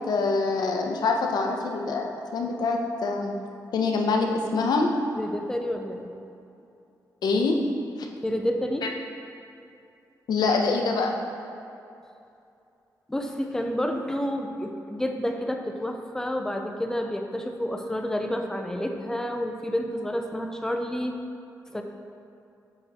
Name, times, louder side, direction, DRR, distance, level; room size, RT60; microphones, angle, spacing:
voice 1, 0.1-2.1 2.3-3.4 3.7-4.9 7.2-7.6 8.8-8.9 10.3-11.1, left 4 dB, 75° left, 3 dB, 0.6 m, -25 dB
voice 2, 5.1-6.1 8.2-8.9 13.1-21.2 21.7-21.8, equal, 5° left, 4 dB, 0.4 m, -29 dB
7.0 x 3.4 x 4.0 m, 2.7 s
wide cardioid pair, 140°, 7 cm